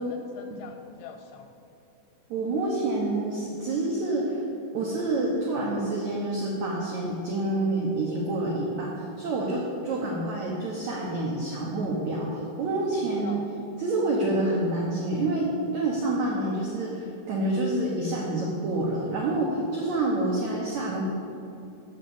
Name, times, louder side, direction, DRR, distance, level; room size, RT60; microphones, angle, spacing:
voice 1, 0.0-1.5 9.8-9.9 13.2-13.5 20.6-20.8, left 6 dB, 80° left, 5 dB, 2.3 m, -44 dB
voice 2, 2.3-4.4 4.7-13.4 13.8-21.0, right 2 dB, 80° right, -3 dB, 1.6 m, -28 dB
8.3 x 6.6 x 7.1 m, 2.7 s
omnidirectional pair, 4.9 m